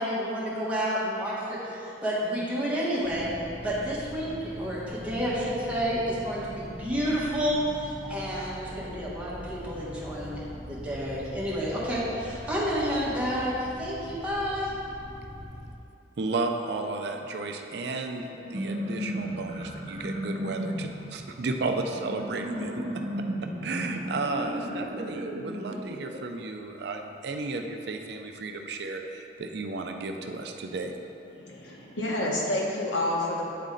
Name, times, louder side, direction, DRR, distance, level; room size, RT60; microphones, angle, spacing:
voice 1, 0.0-3.3 3.6-10.4 10.7-14.7, equal, 5° right, -9 dB, 1.4 m, -30 dB
sound 1, 3.0-15.8, equal, 20° left, 0.7 m, -42 dB
voice 2, 16.2-22.8 23.6-30.9, right 3 dB, 60° right, 4 dB, 0.4 m, -33 dB
sound 2, 18.3-26.2, equal, 40° right, 0.8 m, -34 dB
voice 3, 31.3-33.4, left 1 dB, 85° left, -3 dB, 1.1 m, -29 dB
9.4 x 4.1 x 3.8 m, 2.8 s
head